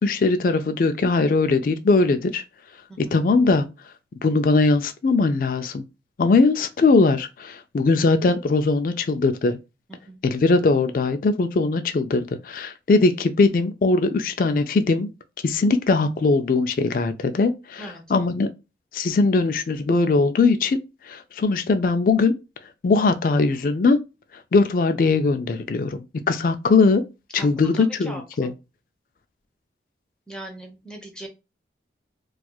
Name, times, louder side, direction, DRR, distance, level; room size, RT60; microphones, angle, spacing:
voice 1, 0.0-2.4 3.0-3.7 4.2-5.8 6.2-9.6 10.2-15.1 15.4-18.5 18.9-22.3 22.8-24.0 24.3-27.0 27.3-28.5, left 3 dB, 50° left, 0.3 m, -20 dB
voice 2, 9.9-10.2 17.8-18.0 27.3-28.5 30.3-31.3, right 1 dB, 5° left, 0.8 m, -40 dB
4.3 x 2.4 x 2.2 m
head